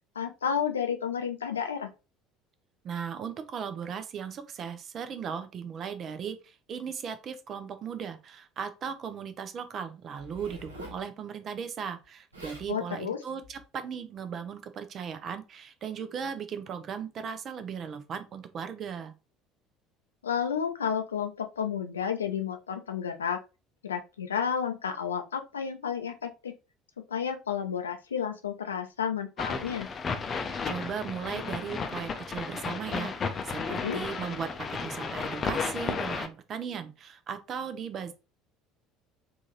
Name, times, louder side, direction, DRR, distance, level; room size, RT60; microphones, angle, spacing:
voice 1, 0.2-1.9 12.7-13.2 20.2-23.4 23.8-26.5 27.1-29.9 33.7-34.0, left 7 dB, 75° left, 0.5 m, -31 dB
voice 2, 2.8-19.1 30.7-38.1, right 7 dB, 40° right, 0.6 m, -37 dB
Zipper (clothing), 10.2-11.0 12.0-12.1 12.3-12.7 13.4-13.6, left 1 dB, 85° right, 1.1 m, -45 dB
sound 1, 29.4-36.3, left 5 dB, 30° left, 0.6 m, -33 dB
3.7 x 2.5 x 3.1 m
figure-of-eight pair, 60°, 0 cm